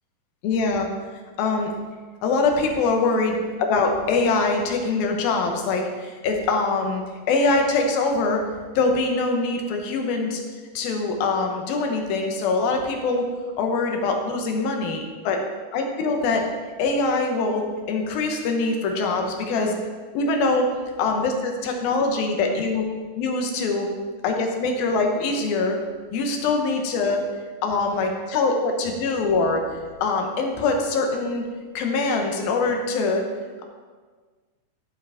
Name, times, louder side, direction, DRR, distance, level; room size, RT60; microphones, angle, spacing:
voice 1, 0.4-0.9 1.4-1.7 2.2-8.4 8.8-10.4 10.7-13.3 13.6-15.4 15.7-16.4 16.8-19.8 20.1-20.7 21.0-22.9 23.2-23.9 24.2-25.8 26.1-27.2 27.6-29.6 30.0-31.4 31.7-33.2, left 3 dB, 80° left, 3 dB, 2.9 m, -23 dB
14.0 x 7.4 x 3.5 m, 1.5 s
omnidirectional pair, 4.3 m